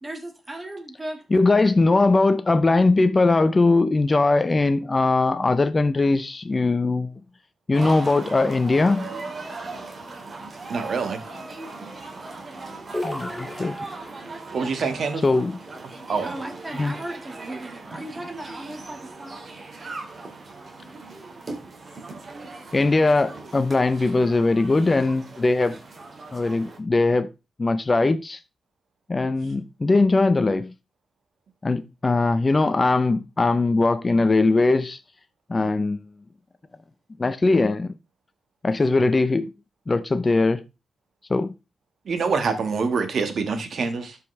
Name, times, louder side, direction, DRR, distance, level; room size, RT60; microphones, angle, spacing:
voice 1, 0.0-1.2 16.2-19.5, right 1 dB, 20° right, 1.9 m, -36 dB
voice 2, 1.3-7.1 7.7-9.1 13.0-13.8 15.2-15.6 16.8-16.9 22.7-25.7 26.3-27.3 27.6-28.4 29.1-30.7 31.6-35.0 35.5-36.0 37.2-37.9 38.6-39.5 39.9-40.6 41.3-41.5, left 3 dB, 30° left, 0.6 m, -20 dB
sound 1, 7.7-26.8, right 3 dB, 40° right, 2.2 m, -39 dB
voice 3, 10.7-11.2 14.5-15.2 15.8-16.3 42.0-44.2, right 5 dB, 60° right, 1.6 m, -26 dB
sound 2, 12.9-14.5, left 1 dB, ahead, 1.8 m, -33 dB
12.5 x 5.4 x 3.3 m
cardioid pair, 95°, 0 cm